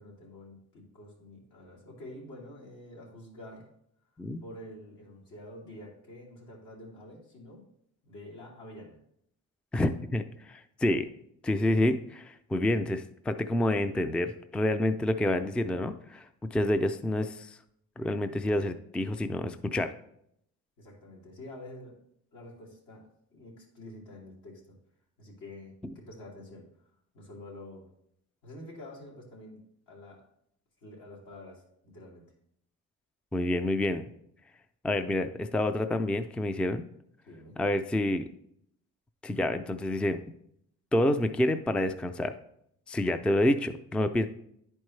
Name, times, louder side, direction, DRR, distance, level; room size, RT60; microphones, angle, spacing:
voice 1, 0.0-3.7 4.4-7.6 8.0-9.0 20.8-22.0 22.3-23.1 23.3-24.6 25.2-27.8 28.4-29.6 29.9-30.2 30.8-32.2 35.0-35.1 37.3-37.6, left 1 dB, 85° left, -4 dB, 2.7 m, -48 dB
voice 2, 9.7-11.1 11.4-16.2 16.5-17.6 18.0-19.9 33.3-34.0 34.8-36.8 37.6-38.2 39.2-40.2 40.9-42.3 42.9-44.3, left 1 dB, 5° left, 9 dB, 0.3 m, -28 dB
10.0 x 4.5 x 3.2 m, 0.73 s
cardioid pair, 90°, 30 cm